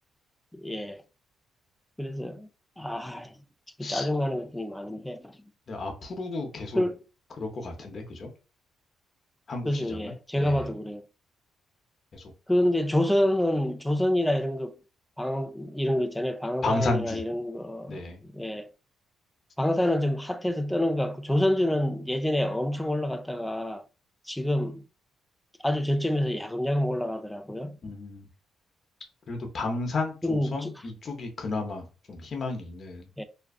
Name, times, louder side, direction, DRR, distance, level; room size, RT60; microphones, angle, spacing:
voice 1, 0.5-1.0 2.0-2.5 2.8-3.3 3.8-5.3 6.8-7.0 9.6-11.0 12.5-14.8 15.2-18.7 19.6-23.8 24.3-24.8 25.6-27.8 30.2-30.8 33.2-33.3, left 1 dB, 5° left, 0.3 m, -27 dB
voice 2, 5.7-6.8 7.4-8.3 9.5-10.7 12.1-12.3 16.6-17.2 17.9-18.2 27.8-28.3 29.3-33.1, left 3 dB, 45° left, 0.6 m, -33 dB
2.4 x 2.3 x 2.3 m
cardioid pair, 90°, 0 cm